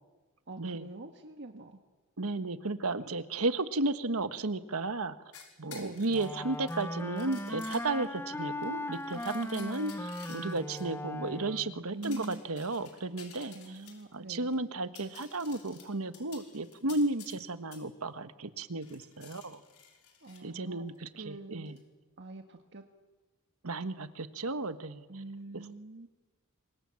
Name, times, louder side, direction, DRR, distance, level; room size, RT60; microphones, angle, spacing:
voice 1, 0.5-1.8 5.6-6.1 11.9-12.4 13.5-14.5 20.2-20.8 21.1-21.8 22.2-22.8 25.1-26.1, right 2 dB, 55° right, 5 dB, 1.6 m, -44 dB
voice 2, 2.2-5.1 5.6-13.6 14.1-19.6 20.4-21.8 23.6-25.1, right 2 dB, 75° right, 11 dB, 1.4 m, -34 dB
sound 1, 5.3-8.2 8.6-10.8 12.0-14.1 14.5-14.6 14.8-17.4 17.7-17.8 18.8-20.4 21.7-21.8, left 7 dB, 85° left, 5.6 m, -53 dB
Wind instrument woodwind instrument, 6.1-11.8, left 1 dB, 10° left, 0.8 m, -38 dB
28.0 x 24.0 x 7.7 m, 1.2 s
head